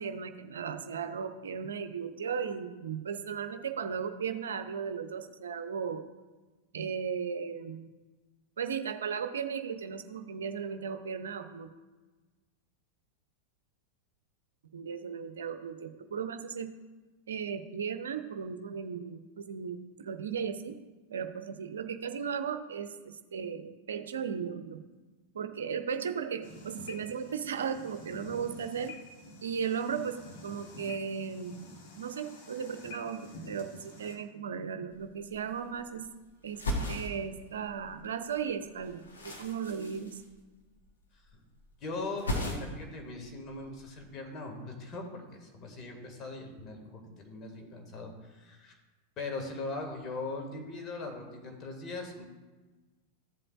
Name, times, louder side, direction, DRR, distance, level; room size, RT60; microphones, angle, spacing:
voice 1, 0.0-6.1 6.7-7.9 8.6-11.7 14.7-16.8 17.3-20.8 21.1-24.9 25.3-28.9 29.4-31.6 32.0-36.1 36.4-40.2, right 7 dB, 65° right, 9 dB, 0.7 m, -36 dB
sound 1, 26.4-34.2, left 2 dB, 50° left, 2.2 m, -49 dB
sound 2, 34.9-35.0 35.2-36.1 36.4-38.1 38.4-40.9 41.1-41.7 41.9-42.9 43.2-44.0, left 1 dB, 70° left, 1.9 m, -37 dB
voice 2, 41.8-48.8 49.2-52.3, left 3 dB, 30° left, 2 dB, 2.2 m, -40 dB
14.5 x 7.6 x 2.6 m, 1.2 s
figure-of-eight pair, 90°, 0 cm